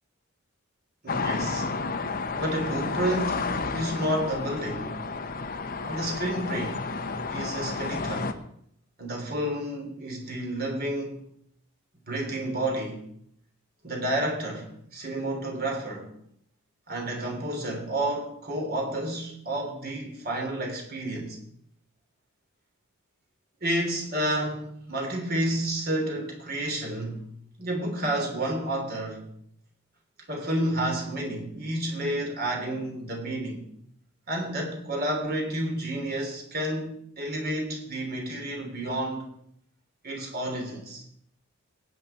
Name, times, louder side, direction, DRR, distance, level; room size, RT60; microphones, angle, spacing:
voice 1, 1.0-1.7 2.3-5.1 5.9-6.9 7.3-8.4 9.0-11.2 12.1-13.0 13.8-16.1 16.9-21.4 23.6-27.2 27.6-29.3 30.3-33.6 34.3-39.3 40.0-41.0, right 1 dB, 45° right, 3.5 m, -30 dB
sound 1, 1.1-8.3, left 4 dB, 40° left, 0.9 m, -31 dB
22.0 x 9.3 x 4.5 m
head